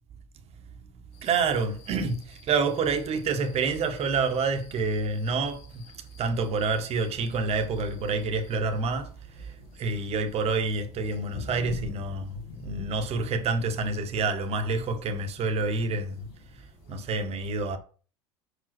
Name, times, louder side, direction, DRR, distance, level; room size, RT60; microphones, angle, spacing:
sound 1, 1.1-17.2, left 5 dB, 75° left, 1.7 m, -48 dB
voice 1, 1.2-5.8 6.2-16.3 16.9-17.8, right 4 dB, 45° right, 1.4 m, -28 dB
5.5 x 5.2 x 6.0 m
hypercardioid pair, 85°, 15 cm